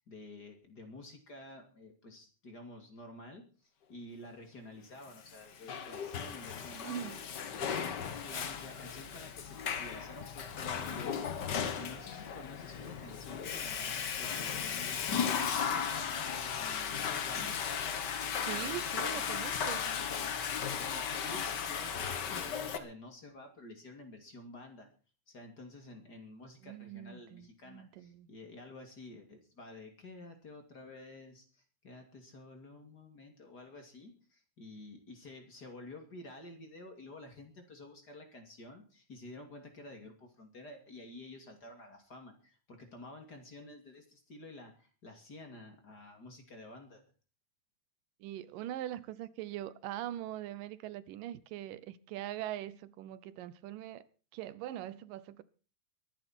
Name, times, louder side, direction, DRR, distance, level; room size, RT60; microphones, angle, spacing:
voice 1, 0.0-7.1 7.6-16.3 16.6-17.5 20.7-24.9 25.3-47.0, left 2 dB, 30° left, 2.8 m, -50 dB
Water / Toilet flush, 5.3-22.8, left 7 dB, 60° left, 1.1 m, -36 dB
voice 2, 6.8-7.2 18.4-19.9 26.6-28.3 48.2-54.0 54.3-55.4, right 13 dB, 90° right, 2.6 m, -42 dB
23.0 x 11.0 x 4.4 m
omnidirectional pair, 3.8 m